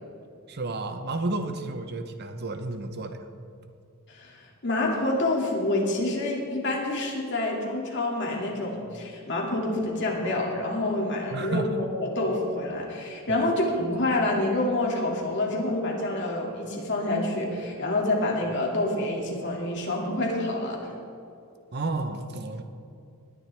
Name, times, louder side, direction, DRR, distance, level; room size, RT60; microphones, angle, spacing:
voice 1, 0.5-3.2 11.3-11.8 13.3-13.4 21.7-22.6, right 2 dB, 45° right, 8 dB, 0.8 m, -31 dB
voice 2, 4.1-20.8, left 2 dB, 55° left, -1 dB, 2.3 m, -27 dB
19.5 x 10.5 x 3.4 m, 2.5 s
head